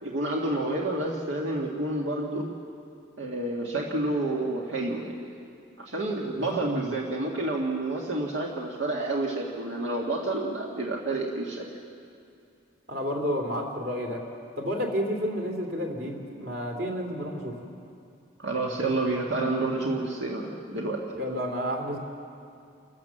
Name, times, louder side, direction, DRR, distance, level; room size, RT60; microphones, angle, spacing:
voice 1, 0.0-2.5 3.2-5.2 5.9-11.7 18.4-21.0, right 2 dB, 75° right, -2 dB, 1.9 m, -29 dB
voice 2, 12.9-14.2 14.6-17.7 21.1-22.0, equal, 50° right, 2 dB, 2.8 m, -31 dB
28.5 x 13.0 x 7.5 m, 2.5 s
head